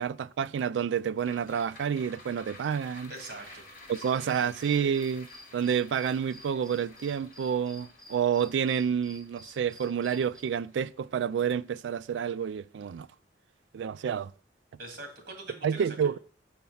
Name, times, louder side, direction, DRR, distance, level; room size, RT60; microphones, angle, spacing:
voice 1, 0.0-3.1 3.9-5.3 5.5-13.1 13.7-14.3 15.6-16.2, right 7 dB, 75° right, 0.3 m, -29 dB
sound 1, 1.2-11.7 12.1-12.2, left 2 dB, 50° left, 1.4 m, -52 dB
voice 2, 3.1-3.6 3.9-4.3 14.8-16.0, right 2 dB, 55° right, 2.2 m, -44 dB
sound 2, 3.8-10.4, left 1 dB, 5° left, 0.9 m, -53 dB
7.2 x 4.5 x 5.4 m
head